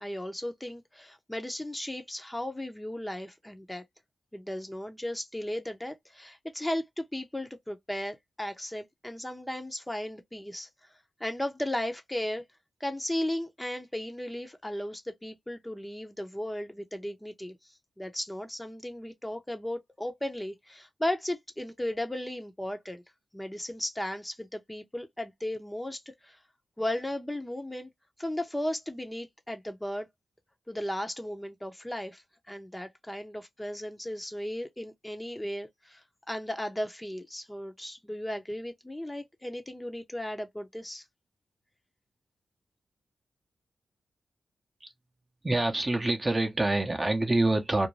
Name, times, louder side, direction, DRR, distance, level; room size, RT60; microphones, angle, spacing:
voice 1, 0.0-3.8 4.3-10.9 11.2-12.4 12.8-23.0 23.3-26.4 26.8-27.9 28.2-30.1 30.7-41.0, left 1 dB, 10° left, 0.8 m, -36 dB
voice 2, 45.4-47.9, right 2 dB, 25° right, 0.8 m, -26 dB
2.6 x 2.2 x 3.1 m
cardioid pair, 65°, 0 cm